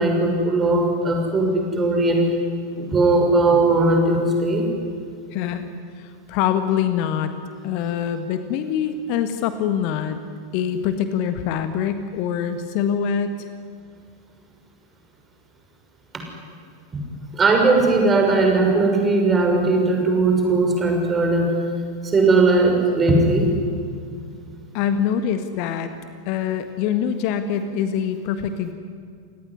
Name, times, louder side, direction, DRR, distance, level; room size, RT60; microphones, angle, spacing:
voice 1, 0.0-2.3 2.8-4.6 17.3-21.5 22.0-23.5, right 2 dB, 20° right, 2 dB, 6.3 m, -18 dB
voice 2, 5.3-5.7 6.0-7.3 7.6-10.2 10.5-13.5 24.7-25.9 26.2-28.7, left 8 dB, 45° left, 9 dB, 1.6 m, -24 dB
29.5 x 19.0 x 9.8 m, 2.3 s
figure-of-eight pair, 90°, 0 cm